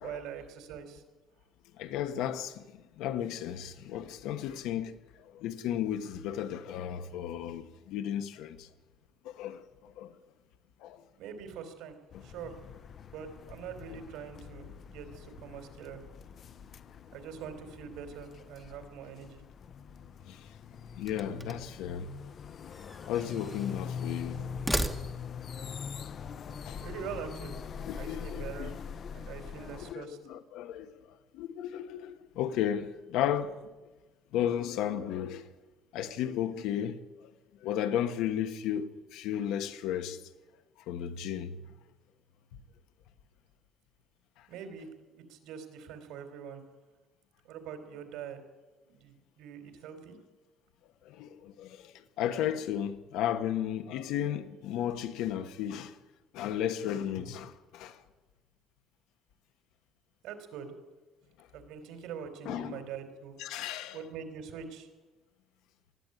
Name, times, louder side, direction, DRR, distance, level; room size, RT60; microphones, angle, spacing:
voice 1, 0.0-1.0 11.2-12.0 12.2-12.6 13.1-16.0 17.1-19.4 26.8-27.6 28.0-28.8 29.1-30.2 44.5-44.9 45.2-46.6 47.4-48.4 48.9-50.1 60.2-60.7 61.5-63.4 63.9-64.9, right 7 dB, 75° right, 3.5 m, -43 dB
voice 2, 1.8-2.6 3.0-4.9 5.4-8.6 9.4-9.6 10.0-10.1 10.8-11.0 21.0-22.1 23.1-24.4 26.7-26.8 27.9-28.7 29.9-30.9 31.3-33.5 34.3-35.4 35.9-37.0 37.6-40.2 40.9-41.5 51.2-51.7 52.2-55.9 56.3-57.9 62.4-62.8 63.4-64.0, left 10 dB, 80° left, 1.3 m, -34 dB
sound 1, 12.1-29.9, left 7 dB, 35° left, 0.6 m, -43 dB
sound 2, 21.0-21.8 22.7-23.8 24.4-25.5, right 1 dB, 5° right, 1.1 m, -36 dB
19.5 x 13.5 x 9.8 m
cardioid pair, 175°, 0 cm